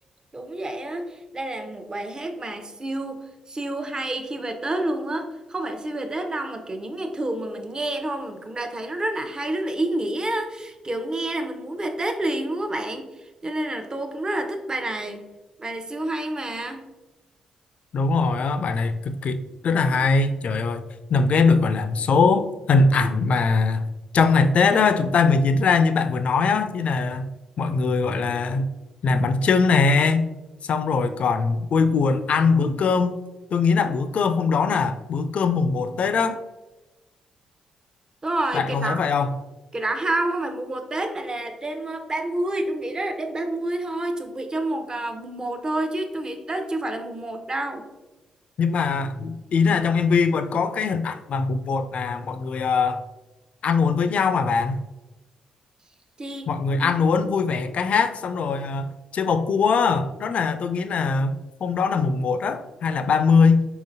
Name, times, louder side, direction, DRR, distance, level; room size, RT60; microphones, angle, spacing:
voice 1, 0.3-13.1 13.4-15.2 15.6-16.9 38.2-39.0 39.7-47.8 56.2-56.9, right 1 dB, 30° right, 6 dB, 0.7 m, -29 dB
voice 2, 17.9-19.4 19.6-20.8 21.1-23.8 24.1-27.3 27.6-28.7 29.0-30.3 30.7-33.1 33.5-36.4 38.5-39.4 48.6-53.0 53.6-54.8 56.5-63.6, left 4 dB, 55° left, 10 dB, 0.4 m, -21 dB
4.4 x 3.8 x 2.7 m, 1.1 s
hypercardioid pair, 40°, 3 cm